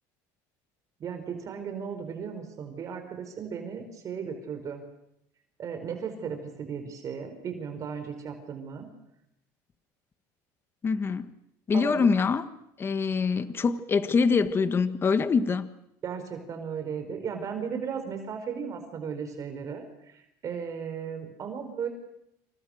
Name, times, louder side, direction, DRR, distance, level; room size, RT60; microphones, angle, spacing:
voice 1, 1.0-4.8 5.6-8.9 11.7-12.1 16.0-20.1 20.4-21.9, right 6 dB, 40° right, 4.6 m, -36 dB
voice 2, 10.8-11.3 11.7-12.5 12.8-15.7, left 5 dB, 25° left, 1.6 m, -24 dB
28.0 x 27.5 x 6.5 m
supercardioid pair, 120°, 9 cm